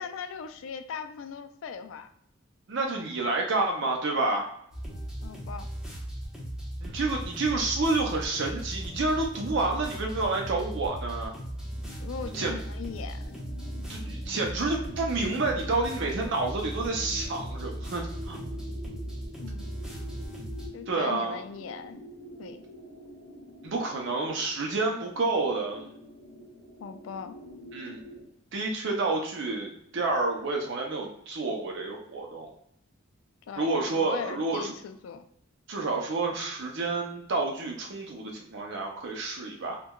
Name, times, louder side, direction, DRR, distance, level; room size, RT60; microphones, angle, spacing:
voice 1, 0.0-2.1 5.2-5.7 12.0-13.4 19.4-19.6 20.7-22.0 22.4-22.6 26.8-27.4 33.5-35.2, left 6 dB, 80° left, 9 dB, 0.3 m, -39 dB
voice 2, 2.7-4.5 6.8-11.3 12.3-12.6 13.9-18.4 20.9-21.4 23.6-25.9 27.7-28.0 28.5-32.5 33.6-34.7 35.7-39.8, right 3 dB, 65° right, 0 dB, 0.5 m, -29 dB
sound 1, 4.7-20.7, right 1 dB, 5° right, 0.8 m, -37 dB
sound 2, 11.6-28.3, equal, 55° left, 1.4 m, -47 dB
4.5 x 2.2 x 2.2 m, 0.72 s
head